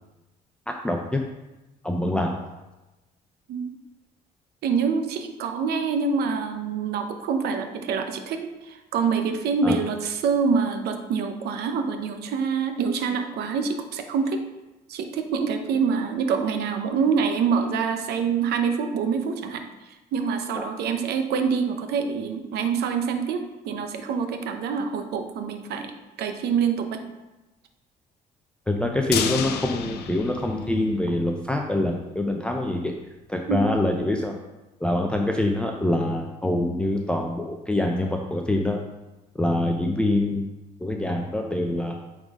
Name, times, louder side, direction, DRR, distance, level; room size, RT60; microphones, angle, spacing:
voice 1, 0.7-1.2 1.8-2.3 9.6-9.8 20.6-20.7 28.7-32.9 33.3-34.3 34.8-38.8 39.3-40.5 40.8-41.9, left 1 dB, 5° left, 1 dB, 0.5 m, -25 dB
voice 2, 4.6-14.4 14.9-19.6 20.1-25.9 26.2-27.1 33.5-33.7, right 5 dB, 75° right, 7 dB, 0.8 m, -26 dB
sound 1, 29.1-31.3 31.6-31.7 32.0-32.1, left 9 dB, 75° left, 0.6 m, -30 dB
8.6 x 3.8 x 3.7 m, 1.1 s
cardioid pair, 110°, 17 cm